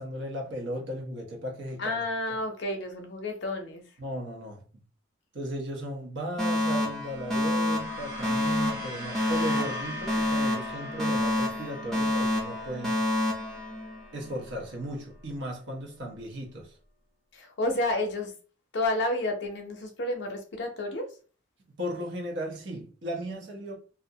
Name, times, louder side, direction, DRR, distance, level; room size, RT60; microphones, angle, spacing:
voice 1, 0.0-2.0 2.3-2.4 4.0-4.8 5.3-13.0 14.1-16.8 21.8-23.8, equal, 60° right, 0.7 m, -36 dB
voice 2, 1.8-3.8 17.3-18.3 18.7-21.1, left 2 dB, 55° left, 0.6 m, -30 dB
Alarm, 6.4-14.4, left 1 dB, ahead, 0.6 m, -28 dB
sound 1, 7.0-15.4, left 1 dB, 80° right, 1.3 m, -42 dB
2.4 x 2.1 x 2.6 m
head